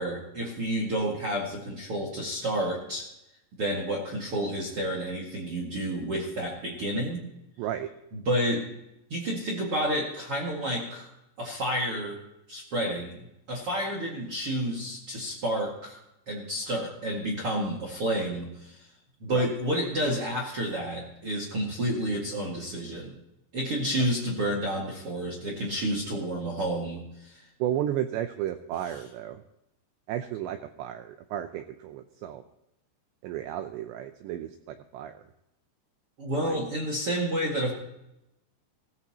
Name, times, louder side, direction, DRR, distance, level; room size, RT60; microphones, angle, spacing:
voice 1, 0.0-3.1 3.6-7.3 8.1-8.7 9.1-11.1 11.4-12.2 12.5-13.2 13.5-16.0 16.3-18.9 19.2-23.2 23.5-27.5 36.2-37.7, right 1 dB, 50° right, -1 dB, 1.7 m, -30 dB
voice 2, 7.6-7.9 19.3-19.4 27.6-29.4 30.1-32.4 33.2-35.2 36.4-36.6, right 11 dB, 85° right, 8 dB, 2.5 m, -33 dB
17.0 x 16.0 x 2.9 m, 0.87 s
omnidirectional pair, 5.8 m